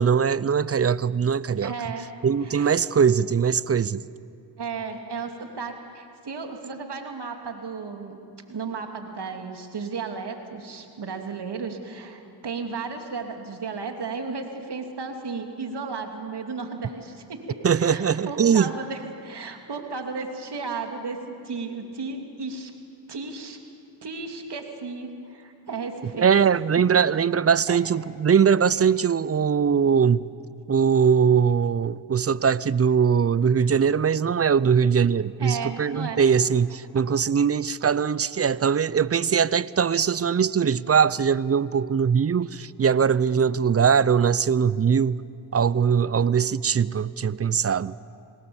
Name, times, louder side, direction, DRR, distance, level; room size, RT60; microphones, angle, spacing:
voice 1, 0.0-1.7 2.2-4.0 17.6-18.7 26.2-30.3 30.7-45.2 45.5-47.9, right 7 dB, 30° right, 0.6 m, -21 dB
voice 2, 1.6-2.0 2.4-2.8 4.6-8.2 8.5-21.2 21.4-22.7 23.1-23.6 24.0-26.3 27.7-27.8 35.4-36.2, right 4 dB, 60° right, 2.9 m, -34 dB
26.0 x 19.5 x 7.2 m
supercardioid pair, 50°, 46 cm